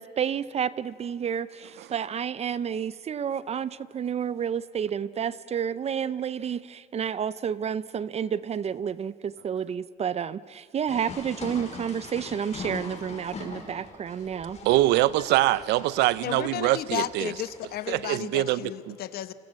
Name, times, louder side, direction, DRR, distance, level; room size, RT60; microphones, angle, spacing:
voice 1, 0.0-14.6, right 8 dB, 40° right, 0.6 m, -30 dB
sound 1, 10.9-18.1, left 3 dB, 40° left, 5.5 m, -42 dB
voice 2, 14.6-17.3 17.9-18.6 18.9-19.0, right 16 dB, 85° right, 0.6 m, -23 dB
voice 3, 16.2-19.3, left 12 dB, 65° left, 1.0 m, -33 dB
29.0 x 27.0 x 7.5 m
cardioid pair, 110°, 17 cm